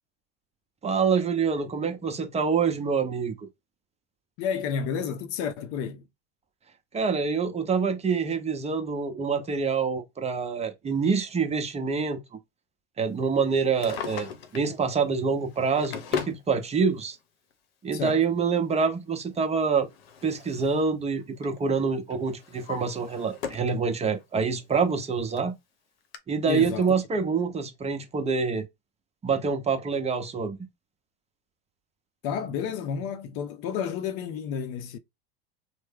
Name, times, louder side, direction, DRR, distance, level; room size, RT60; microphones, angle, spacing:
voice 1, 0.8-3.5 6.9-12.2 13.0-17.2 17.8-19.9 20.2-25.6 26.3-28.7 29.2-30.6, right 5 dB, 20° right, 0.8 m, -26 dB
voice 2, 4.4-6.1 17.9-18.2 26.5-26.9 32.2-35.0, left 7 dB, 50° left, 0.6 m, -31 dB
Drawer open or close, 13.6-14.7 15.5-16.4 17.5-17.6 19.4-20.9 21.2-21.6 22.1-23.8 24.2-24.3 25.0-25.1 25.4-25.5 26.1-26.2, left 7 dB, 80° left, 0.9 m, -37 dB
3.2 x 2.1 x 3.6 m
hypercardioid pair, 100°, 30 cm